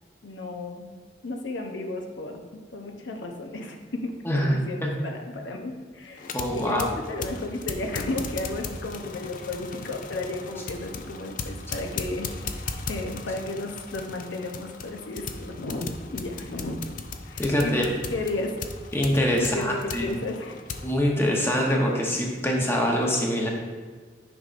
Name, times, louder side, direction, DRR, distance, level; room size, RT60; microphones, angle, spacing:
voice 1, 0.2-0.8 1.2-2.4 2.7-4.2 4.4-12.3 12.9-16.8 17.3-18.5 19.4-20.6, left 2 dB, 80° left, 3 dB, 0.7 m, -33 dB
voice 2, 4.2-4.9 6.3-6.9 17.4-17.9 18.9-20.1 20.8-23.5, equal, 15° left, -1 dB, 0.8 m, -24 dB
sound 1, 6.2-20.9, left 4 dB, 45° left, 0.4 m, -37 dB
9.4 x 5.2 x 2.5 m, 1.5 s
head